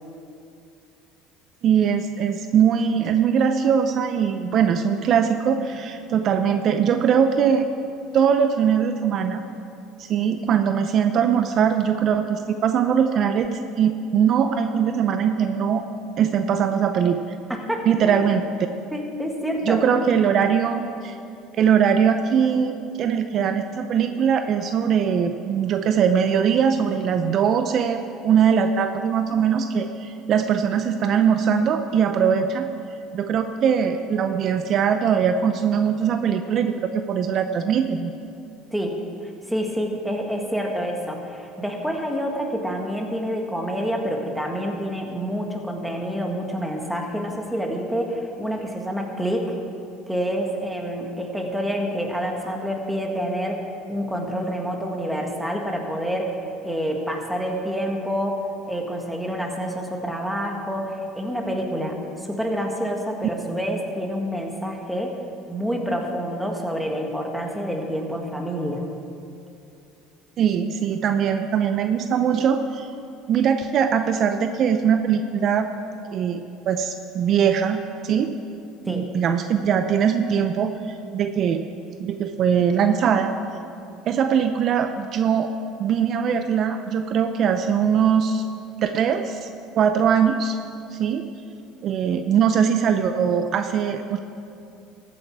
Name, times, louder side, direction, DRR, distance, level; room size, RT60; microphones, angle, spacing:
voice 1, 1.6-7.7 8.1-9.4 10.0-15.8 16.2-17.2 17.9-18.4 19.7-21.2 21.6-32.7 33.1-38.1 63.4-63.8 70.4-72.9 73.3-75.7 76.1-78.3 78.8-81.6 82.0-83.3 84.1-85.5 85.8-88.4 88.8-89.5 89.7-90.6 90.9-91.2 91.8-94.2, right 7 dB, 50° right, 8 dB, 0.5 m, -21 dB
voice 2, 17.5-18.2 18.9-19.8 38.7-39.0 39.5-49.6 50.1-53.6 53.9-65.2 65.5-68.8 78.9-79.1, equal, 5° right, 1 dB, 1.8 m, -27 dB
14.5 x 8.5 x 4.7 m, 2.6 s
supercardioid pair, 90°, 0 cm